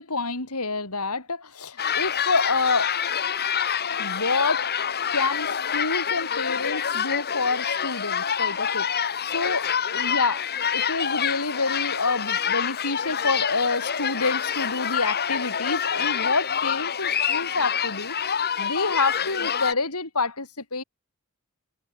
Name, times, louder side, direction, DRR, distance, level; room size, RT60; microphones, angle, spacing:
voice 1, 0.0-2.9 4.0-4.7 5.1-9.6 9.9-10.5 10.7-20.8, left 3 dB, 85° left, 6.3 m, -28 dB
sound 1, 1.8-19.7, left 7 dB, 45° left, 2.2 m, -27 dB
head